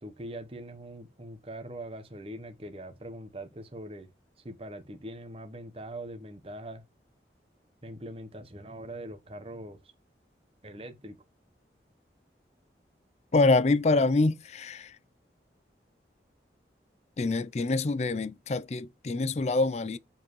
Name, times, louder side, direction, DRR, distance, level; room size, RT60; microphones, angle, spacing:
voice 1, 0.0-4.1 4.4-6.8 7.8-9.8 10.6-11.2, right 1 dB, 30° right, 1.0 m, -42 dB
voice 2, 13.3-15.0 17.2-20.0, left 3 dB, 40° left, 0.4 m, -25 dB
7.3 x 4.7 x 3.1 m
head